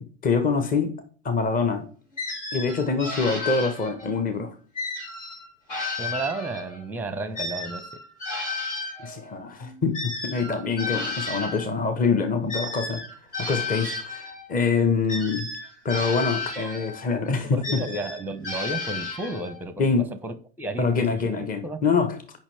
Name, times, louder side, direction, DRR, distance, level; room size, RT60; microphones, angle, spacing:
voice 1, 0.0-1.9 2.5-4.5 9.0-13.0 13.4-15.5 15.8-17.8 19.8-20.1 20.8-22.2, left 4 dB, 20° left, 1.1 m, -25 dB
sound 1, 2.2-4.2 4.8-6.8 7.3-11.7 12.5-14.5 15.1-17.1 17.6-19.6, left 3 dB, 75° left, 4.0 m, -33 dB
voice 2, 6.0-7.8 16.8-16.9 17.4-21.8, right 2 dB, 5° right, 0.8 m, -33 dB
8.6 x 5.5 x 3.4 m
figure-of-eight pair, 85°, 37 cm